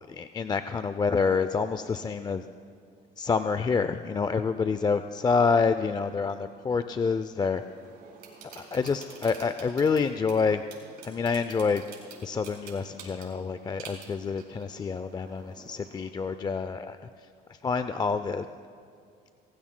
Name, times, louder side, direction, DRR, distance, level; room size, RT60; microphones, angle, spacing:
voice 1, 0.1-2.4 3.2-7.6 8.6-10.6 11.0-11.8 12.2-17.0 17.6-18.5, left 5 dB, 25° left, 11 dB, 0.4 m, -27 dB
sound 1, 7.5-16.1, right 5 dB, 70° right, 4.4 m, -49 dB
27.0 x 16.0 x 2.2 m, 2.3 s
cardioid pair, 110°, 17 cm